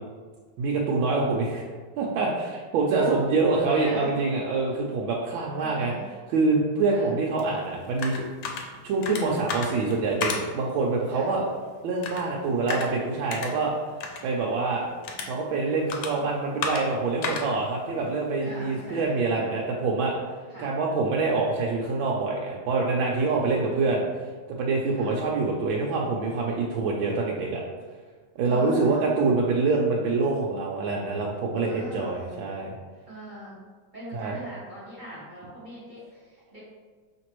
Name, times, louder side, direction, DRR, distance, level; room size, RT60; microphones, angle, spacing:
voice 1, 0.6-1.6 2.0-5.9 6.3-8.2 8.6-11.4 11.8-13.7 14.2-14.9 15.2-20.1 20.6-24.0 24.5-27.6 28.4-32.7 34.1-34.4, right 3 dB, 85° right, -3 dB, 1.4 m, -25 dB
voice 2, 3.5-4.1 5.6-6.0 6.8-7.1 11.1-11.3 18.4-19.2 20.5-20.7 23.5-24.0 25.0-25.2 28.4-29.1 31.6-32.2 33.1-33.6 33.9-36.6, right 1 dB, 30° right, -9 dB, 1.1 m, -41 dB
sound 1, 7.4-19.0, left 4 dB, 80° left, 1.4 m, -37 dB
5.1 x 3.2 x 3.0 m, 1.5 s
omnidirectional pair, 2.1 m